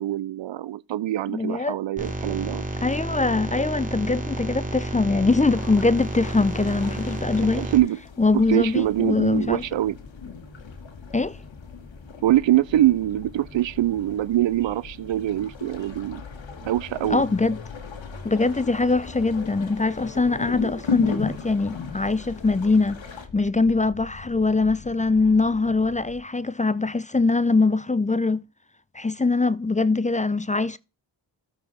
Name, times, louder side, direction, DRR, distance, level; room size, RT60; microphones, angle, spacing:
voice 1, 0.0-2.6 7.4-8.0 8.3-10.0 12.2-16.2 16.6-17.2, right 14 dB, 80° right, 0.6 m, -24 dB
voice 2, 1.3-1.8 2.8-7.7 8.2-9.6 11.1-11.4 17.1-17.6 18.2-23.0 23.3-28.4 28.9-30.8, left 3 dB, 15° left, 0.5 m, -22 dB
sound 1, 2.0-7.8, right 2 dB, 15° right, 2.7 m, -31 dB
sound 2, 5.5-23.3, left 6 dB, 80° left, 1.9 m, -38 dB
sound 3, 7.9-26.3, left 4 dB, 65° left, 1.9 m, -44 dB
13.5 x 4.8 x 4.2 m
cardioid pair, 45°, 45 cm